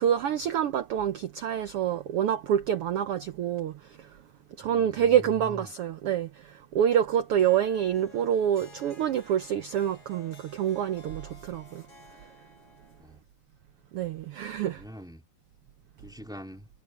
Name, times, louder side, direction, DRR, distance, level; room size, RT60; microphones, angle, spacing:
voice 1, 0.0-4.1 4.6-11.8 13.9-14.8, right 9 dB, 80° right, 1.3 m, -27 dB
voice 2, 4.6-5.7 13.0-13.2 14.6-15.2 16.0-16.7, equal, ahead, 2.1 m, -44 dB
Harp, 7.3-13.1, left 3 dB, 35° left, 7.7 m, -53 dB
omnidirectional pair, 3.6 m